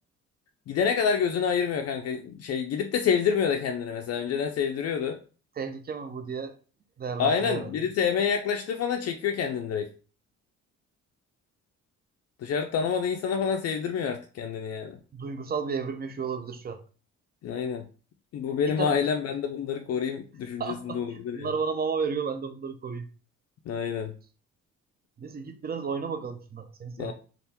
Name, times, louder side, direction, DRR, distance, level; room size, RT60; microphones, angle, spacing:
voice 1, 0.7-5.2 7.2-9.9 12.4-15.0 17.4-17.8 18.3-21.5 23.7-24.1 27.0-27.1, left 7 dB, 55° left, 0.4 m, -27 dB
voice 2, 5.6-6.6 7.0-7.7 15.1-16.8 18.7-19.0 20.6-23.1 25.2-27.1, right 5 dB, 30° right, 0.5 m, -33 dB
3.4 x 2.5 x 2.8 m
cardioid pair, 90°, 30 cm